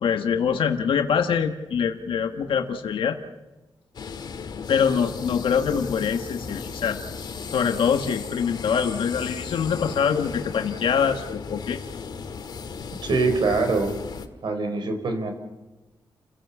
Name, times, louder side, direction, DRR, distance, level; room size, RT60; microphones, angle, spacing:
voice 1, 0.0-3.2 4.7-7.0 7.5-11.8, left 7 dB, 85° left, 6 dB, 1.4 m, -24 dB
sound 1, 3.9-14.3, left 5 dB, 55° left, 1.7 m, -35 dB
voice 2, 13.0-13.9 14.4-15.3, right 3 dB, 60° right, 6 dB, 4.4 m, -23 dB
30.0 x 16.5 x 7.0 m, 1.1 s
wide cardioid pair, 165°, 9 cm